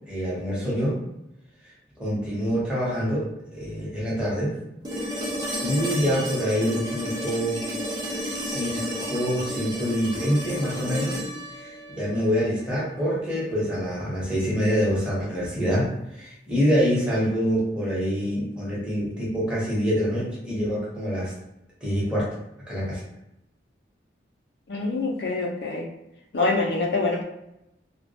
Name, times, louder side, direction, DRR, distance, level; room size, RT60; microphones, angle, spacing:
voice 1, 0.1-1.0 2.0-4.6 5.6-7.7 8.4-11.2 11.6-21.3 21.8-22.3 22.7-23.0, equal, 5° right, -8 dB, 0.8 m, -26 dB
sound 1, 4.8-12.9 15.0-15.1, equal, 20° right, 0.5 m, -32 dB
voice 2, 24.7-25.9 26.3-27.2, left 3 dB, 65° left, 1 dB, 0.5 m, -25 dB
2.2 x 2.1 x 2.7 m, 0.85 s
head